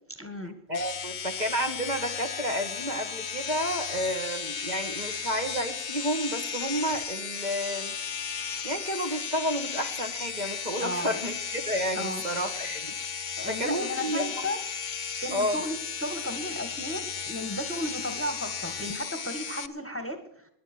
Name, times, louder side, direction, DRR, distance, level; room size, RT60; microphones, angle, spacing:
voice 1, 0.2-0.6 10.8-11.2 12.0-12.2 13.4-14.6 15.2-20.5, left 1 dB, 10° left, 8 dB, 1.4 m, -34 dB
sound 1, 0.7-19.7, left 6 dB, 45° left, 0.8 m, -35 dB
voice 2, 0.7-7.9 8.6-14.4 15.3-15.6, equal, 35° right, 4 dB, 1.6 m, -31 dB
23.0 x 10.5 x 4.4 m, 0.74 s
omnidirectional pair, 1.3 m